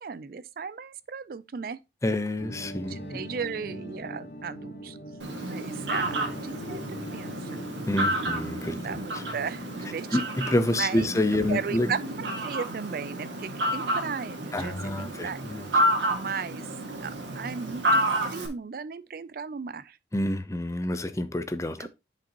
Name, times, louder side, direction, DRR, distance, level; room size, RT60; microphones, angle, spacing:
voice 1, 0.0-1.8 2.9-5.0 5.4-7.6 8.7-10.2 10.8-11.1 11.5-15.4 16.1-16.7 17.0-20.0 21.8-21.9, right 6 dB, 50° right, 0.4 m, -36 dB
voice 2, 2.0-3.0 7.9-9.2 10.1-11.9 14.5-15.9 20.1-21.9, left 1 dB, 15° left, 0.6 m, -28 dB
sound 1, 2.4-10.0, equal, 70° left, 2.0 m, -41 dB
Fowl, 5.2-18.5, right 1 dB, 75° right, 1.9 m, -30 dB
10.0 x 5.2 x 2.9 m
head